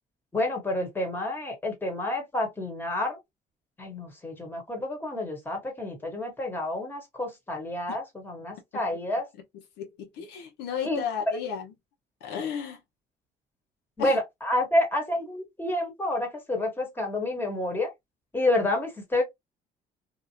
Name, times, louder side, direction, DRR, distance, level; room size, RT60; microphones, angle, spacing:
voice 1, 0.3-3.2 3.8-9.2 10.8-11.0 14.0-17.9 18.3-19.2, left 1 dB, 10° left, 1.4 m, -29 dB
voice 2, 9.8-11.7 12.2-12.8 14.0-14.2, left 7 dB, 85° left, 1.1 m, -33 dB
2.7 x 2.4 x 2.9 m
cardioid pair, 110°, 17 cm